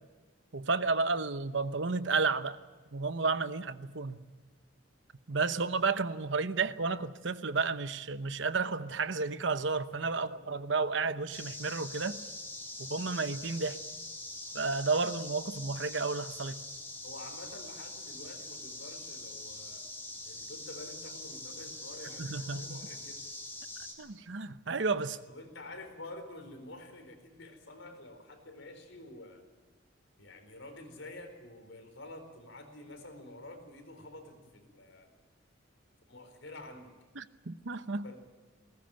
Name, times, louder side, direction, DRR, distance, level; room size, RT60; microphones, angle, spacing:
voice 1, 0.5-2.6 2.9-4.2 5.3-12.2 12.8-13.8 14.5-16.6 22.2-22.8 24.0-25.2 37.1-38.1, right 4 dB, 65° right, 0.9 m, -32 dB
sound 1, 11.3-23.9, left 2 dB, 10° left, 3.6 m, -43 dB
voice 2, 17.0-19.8 20.3-23.3 25.3-29.4 30.2-35.1 36.1-36.9 38.0-38.2, left 2 dB, 75° left, 4.6 m, -48 dB
21.0 x 19.0 x 9.1 m
head